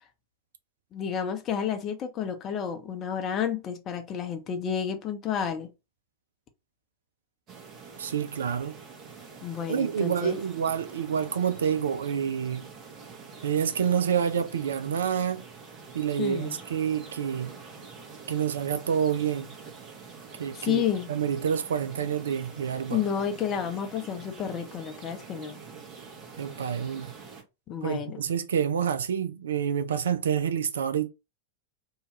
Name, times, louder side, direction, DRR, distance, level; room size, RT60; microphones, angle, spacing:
voice 1, 0.9-5.7 9.4-10.4 16.2-16.6 20.6-21.1 22.9-25.6 27.7-28.2, left 8 dB, 30° left, 0.6 m, -30 dB
sound 1, 7.5-27.4, right 5 dB, 35° right, 0.9 m, -46 dB
voice 2, 8.0-8.8 9.7-12.7 13.4-15.4 15.9-17.5 18.3-19.5 20.4-20.8 21.1-23.0 26.4-27.1 27.8-31.1, right 8 dB, 65° right, 0.3 m, -28 dB
2.7 x 2.3 x 3.0 m
figure-of-eight pair, 90°, 0 cm